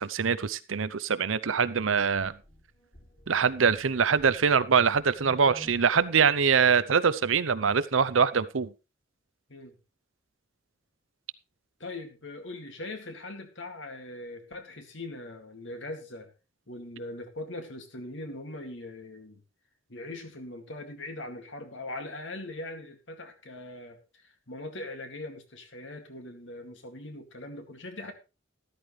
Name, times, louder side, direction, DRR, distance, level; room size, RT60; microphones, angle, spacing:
voice 1, 0.0-2.3 3.3-8.7, right 6 dB, 85° right, 15 dB, 0.7 m, -24 dB
sound 1, 2.2-6.1, equal, 45° left, 6.7 m, -51 dB
voice 2, 11.8-16.3 16.7-19.4 19.9-28.1, left 2 dB, 70° left, 6 dB, 2.3 m, -41 dB
13.0 x 12.5 x 3.2 m, 0.29 s
head